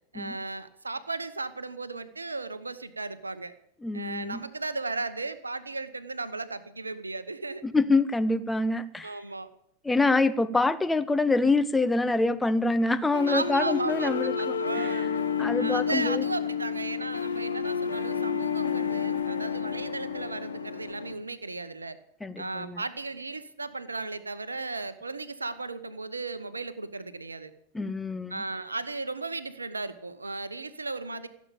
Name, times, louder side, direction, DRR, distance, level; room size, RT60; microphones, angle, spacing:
voice 1, 0.1-3.5 3.9-7.6 9.0-9.5 13.3-15.2 15.6-22.0 22.4-27.5 28.3-31.3, right 3 dB, 80° right, 13 dB, 0.9 m, -35 dB
voice 2, 3.8-4.4 7.6-9.1 9.8-14.3 15.4-16.2 22.2-22.8 27.7-28.4, left 3 dB, 10° left, 12 dB, 0.7 m, -25 dB
sound 1, 13.1-21.1, left 7 dB, 70° left, 1.1 m, -30 dB
15.5 x 7.4 x 8.7 m, 0.76 s
figure-of-eight pair, 90°, 0 cm